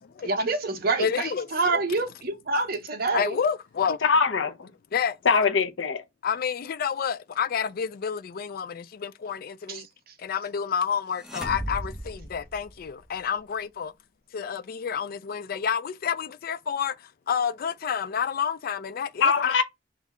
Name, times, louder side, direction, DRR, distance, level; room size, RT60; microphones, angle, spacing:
voice 1, 0.2-3.4 9.7-10.1, right 3 dB, 55° right, 0.8 m, -27 dB
voice 2, 1.0-1.5 1.7-1.8 3.1-4.0 4.9-5.2 6.2-9.9 10.2-13.9 14.3-19.6, left 7 dB, 50° left, 0.4 m, -29 dB
voice 3, 4.0-4.7 5.3-6.0 19.2-19.6, left 5 dB, 90° left, 0.7 m, -22 dB
sound 1, 11.2-13.2, equal, 5° right, 1.0 m, -36 dB
3.6 x 3.2 x 3.6 m
head